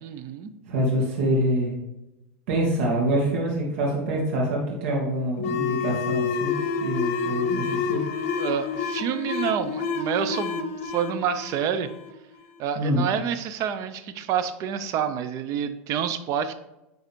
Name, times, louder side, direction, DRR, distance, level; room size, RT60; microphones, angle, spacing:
voice 1, 0.0-0.5 8.3-11.9 12.6-16.5, right 8 dB, 50° right, 10 dB, 0.8 m, -28 dB
voice 2, 0.7-1.7 2.5-8.0 12.8-13.0, right 1 dB, 70° right, -2 dB, 2.4 m, -25 dB
sound 1, 5.4-12.6, left 5 dB, 65° left, 0.9 m, -28 dB
10.0 x 4.0 x 4.6 m, 0.93 s
hypercardioid pair, 110°, 7 cm